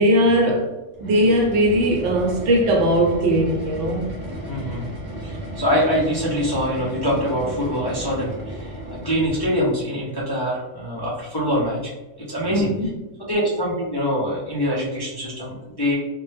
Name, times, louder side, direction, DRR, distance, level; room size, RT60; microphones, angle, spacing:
voice 1, 0.0-4.0 12.5-12.9, equal, 75° right, 0.9 m, -19 dB
sound 1, 0.9-9.7, right 1 dB, 40° right, 0.8 m, -34 dB
voice 2, 4.5-4.9 5.2-8.8 9.0-11.9 12.3-12.7 13.3-16.0, equal, 40° left, 0.3 m, -24 dB
2.1 x 2.1 x 3.1 m
omnidirectional pair, 1.2 m